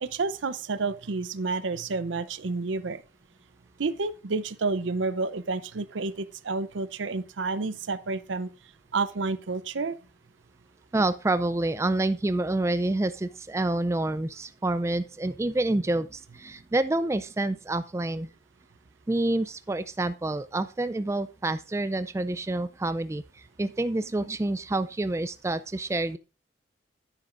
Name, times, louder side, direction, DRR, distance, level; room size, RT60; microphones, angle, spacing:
voice 1, 0.0-3.0 3.8-8.5 8.9-10.0, right 3 dB, 90° right, 0.6 m, -30 dB
voice 2, 10.9-18.3 19.1-26.2, right 2 dB, 15° right, 0.3 m, -28 dB
10.0 x 9.5 x 2.5 m
head